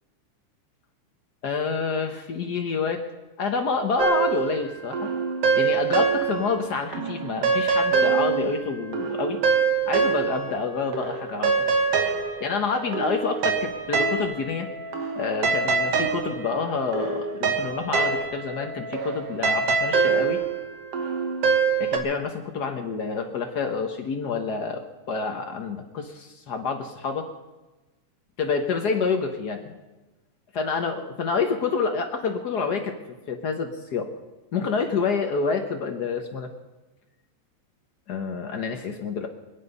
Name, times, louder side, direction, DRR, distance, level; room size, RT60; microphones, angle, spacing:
voice 1, 1.4-3.0 3.4-5.1 5.5-9.4 9.9-11.6 12.4-14.7 15.1-20.4 21.8-27.3 28.4-29.8 30.5-33.0 33.3-34.1 34.5-36.5 38.1-39.3, left 5 dB, 85° left, 4 dB, 0.9 m, -28 dB
sound 1, 4.0-6.6 6.9-10.7 10.9-22.0, right 5 dB, 55° right, 2.3 m, -25 dB
26.0 x 9.0 x 5.5 m, 1.1 s
omnidirectional pair, 3.5 m